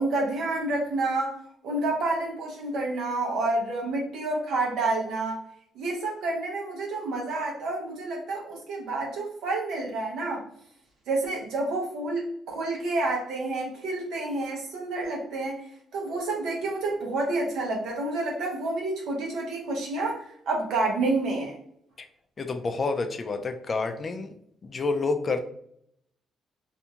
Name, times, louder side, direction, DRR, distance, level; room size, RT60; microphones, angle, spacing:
voice 1, 0.0-1.4 1.6-5.4 5.7-10.4 11.1-15.6 15.9-21.5, right 2 dB, 80° right, -1 dB, 0.8 m, -29 dB
voice 2, 22.4-24.3 24.6-25.4, left 3 dB, 40° left, 7 dB, 0.4 m, -28 dB
2.6 x 2.2 x 2.8 m, 0.68 s
cardioid pair, 90°, 0 cm